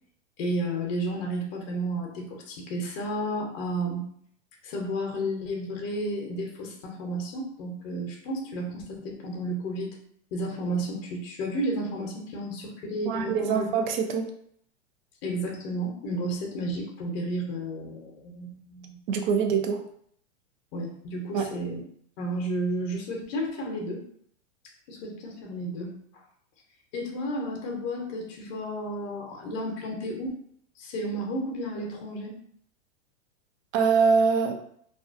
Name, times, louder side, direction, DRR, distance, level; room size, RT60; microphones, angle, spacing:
voice 1, 0.4-4.1 4.6-9.9 10.3-13.7 15.2-19.0 20.7-21.8 22.2-24.0 24.9-26.0 26.9-30.4 30.8-32.4, right 1 dB, 55° left, 0 dB, 0.7 m, -32 dB
voice 2, 13.1-14.3 19.1-19.8 21.3-21.6 33.7-34.5, right 6 dB, 40° right, 5 dB, 0.4 m, -24 dB
2.4 x 2.1 x 2.4 m, 0.65 s
supercardioid pair, 135°, 37 cm